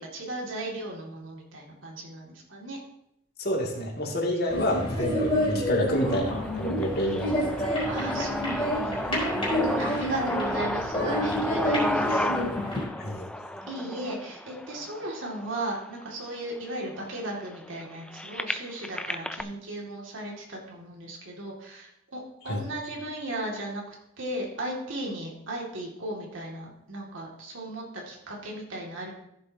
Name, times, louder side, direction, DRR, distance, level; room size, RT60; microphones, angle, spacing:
voice 1, 0.0-2.8 5.3-5.5 7.0-7.1 7.8-12.3 13.7-23.8 24.2-29.1, right 1 dB, 80° right, -2 dB, 2.2 m, -36 dB
voice 2, 3.4-7.6 13.0-13.3 22.5-22.6, equal, 55° left, -1 dB, 2.3 m, -28 dB
sound 1, 4.5-12.8, equal, 30° left, 3.6 m, -29 dB
sound 2, 6.0-15.9 16.6-16.7 16.9-19.4, left 1 dB, 5° left, 0.4 m, -33 dB
14.5 x 7.5 x 2.8 m, 0.79 s
head